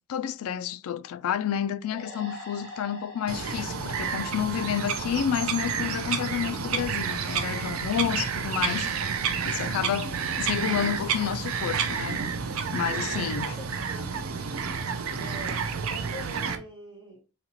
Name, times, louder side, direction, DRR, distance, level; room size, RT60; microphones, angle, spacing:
voice 1, 0.1-8.9 9.4-12.2 12.7-13.6, left 9 dB, 80° left, 0.3 m, -30 dB
sound 1, 1.8-5.3, left 2 dB, 5° right, 2.1 m, -45 dB
Bird vocalization bird call bird song, 3.3-16.6, right 6 dB, 75° right, 0.6 m, -30 dB
voice 2, 13.1-14.1 15.2-17.2, right 2 dB, 10° left, 1.8 m, -44 dB
4.0 x 2.8 x 2.9 m
head